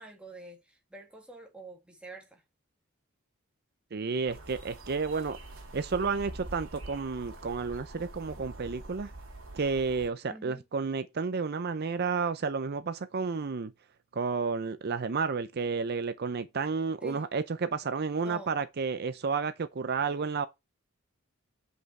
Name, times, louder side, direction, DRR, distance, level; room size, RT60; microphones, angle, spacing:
voice 1, 0.0-2.4 10.3-10.6 17.0-17.2 18.2-18.6, right 3 dB, 5° right, 1.6 m, -46 dB
voice 2, 3.9-5.4 5.7-9.1 9.5-13.7 14.1-20.5, right 5 dB, 50° right, 0.5 m, -31 dB
sound 1, 4.3-10.1, right 2 dB, 75° right, 2.4 m, -45 dB
7.9 x 5.6 x 4.2 m
head